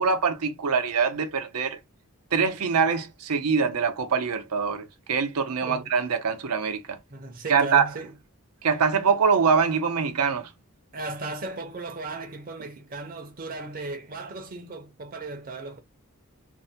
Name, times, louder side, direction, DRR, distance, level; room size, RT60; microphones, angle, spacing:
voice 1, 0.0-1.8 2.3-7.0 7.5-7.9 8.6-10.5, right 5 dB, 85° right, 0.6 m, -24 dB
voice 2, 7.1-8.1 10.9-15.8, right 2 dB, 40° right, 0.6 m, -36 dB
2.6 x 2.1 x 2.7 m
head